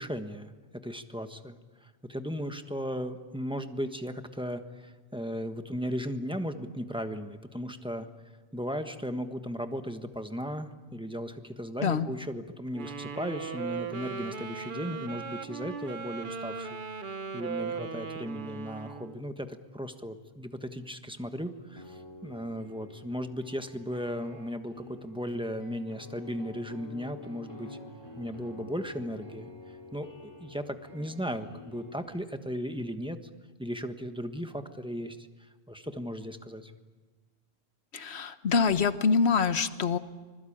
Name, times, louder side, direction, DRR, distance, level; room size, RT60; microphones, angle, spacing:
voice 1, 0.0-8.1 8.5-27.8 28.2-33.2 33.6-36.7, equal, 5° right, 7 dB, 1.3 m, -36 dB
Wind instrument woodwind instrument, 12.7-19.2, right 5 dB, 50° right, 1.2 m, -38 dB
sound 1, 21.6-32.0, left 2 dB, 20° left, 3.1 m, -49 dB
voice 2, 37.9-40.0, left 5 dB, 75° left, 11 dB, 1.4 m, -25 dB
25.0 x 21.5 x 8.8 m, 1.3 s
omnidirectional pair, 1.1 m